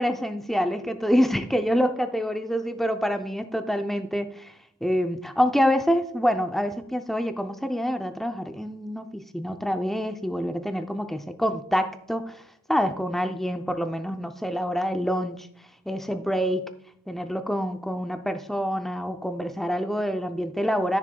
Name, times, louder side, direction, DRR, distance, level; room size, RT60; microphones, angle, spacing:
voice 1, 0.0-4.5 4.8-12.3 12.7-15.5 15.9-16.7 17.1-21.0, equal, ahead, 7 dB, 0.4 m, -26 dB
13.5 x 6.4 x 2.2 m, 0.72 s
head